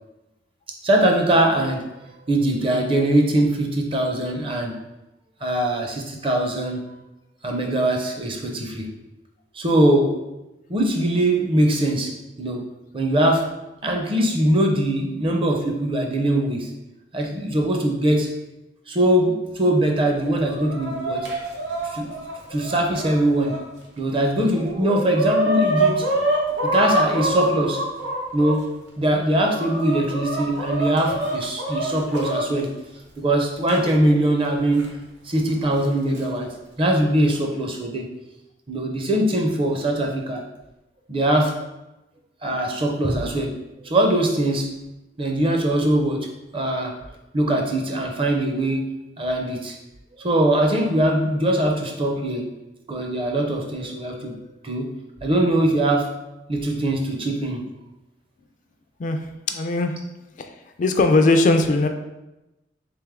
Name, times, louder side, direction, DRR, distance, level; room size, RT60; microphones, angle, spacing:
voice 1, 0.8-4.8 5.4-6.8 7.4-8.9 9.5-10.2 10.7-12.1 12.4-12.6 12.9-13.5 13.8-16.7 17.1-18.3 18.9-21.2 21.9-22.1 22.5-23.6 24.0-26.1 26.6-27.8 28.3-32.7 33.2-34.9 35.2-38.1 38.7-40.4 41.1-41.6 42.4-43.5 43.8-44.7 45.2-46.3 46.5-46.9 47.3-48.8 49.2-49.8 50.2-52.5 52.9-54.9 55.2-56.1 56.5-57.6, right 1 dB, 30° right, 1 dB, 0.5 m, -21 dB
Chicken rooster, 20.1-23.6 24.1-24.2 24.5-28.5 29.2-32.4 33.7-33.8 34.8-34.9 35.8-36.2, right 1 dB, 80° right, 0.9 m, -25 dB
voice 2, 59.0-60.0 60.4-61.9, left 2 dB, 45° left, 6 dB, 0.3 m, -20 dB
3.4 x 3.3 x 3.5 m, 0.97 s
head